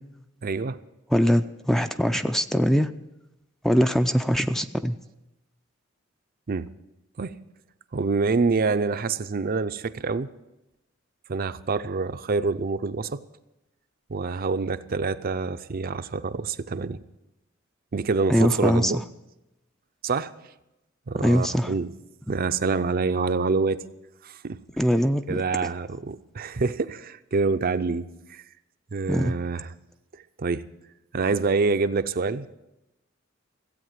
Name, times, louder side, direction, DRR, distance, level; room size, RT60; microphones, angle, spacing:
voice 1, 0.4-0.8 6.5-6.7 7.2-7.3 7.9-10.3 11.3-13.2 14.1-17.0 17.9-19.0 20.0-20.3 21.1-21.9 22.3-23.8 24.2-24.6 25.3-28.4 28.9-29.7 30.4-30.6 31.1-32.5, right 4 dB, 45° right, 11 dB, 0.5 m, -26 dB
voice 2, 1.1-2.9 3.6-4.9 18.3-18.9 21.2-21.7 24.8-25.4 29.1-29.3, equal, ahead, 9 dB, 0.4 m, -22 dB
16.0 x 8.4 x 7.4 m, 0.93 s
head